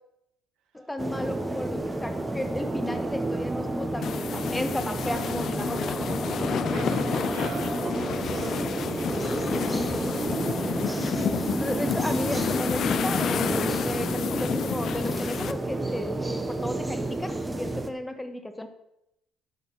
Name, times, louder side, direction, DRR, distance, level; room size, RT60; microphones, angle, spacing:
voice 1, 0.7-6.0 11.5-18.7, left 1 dB, 10° left, 8 dB, 1.3 m, -34 dB
sound 1, 1.0-17.9, right 2 dB, 15° right, 1.1 m, -30 dB
sound 2, 4.0-15.5, left 9 dB, 55° left, 0.4 m, -31 dB
voice 2, 6.7-9.5 10.1-10.6, right 5 dB, 70° right, 4 dB, 1.6 m, -43 dB
11.0 x 4.2 x 5.8 m, 0.83 s
supercardioid pair, 70°, 0 cm